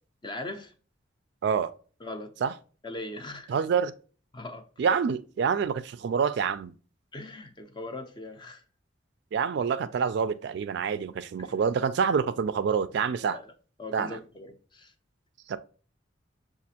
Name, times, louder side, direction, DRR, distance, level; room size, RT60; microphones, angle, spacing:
voice 1, 0.2-0.7 2.0-2.3 2.8-3.5 4.3-4.6 7.1-8.6 11.4-11.5 13.3-13.5 13.8-14.9, left 2 dB, 25° left, 0.5 m, -40 dB
voice 2, 3.5-3.9 4.8-6.7 9.3-13.4 13.9-14.2 15.5-15.6, right 6 dB, 60° right, 0.3 m, -27 dB
6.0 x 2.4 x 2.8 m
head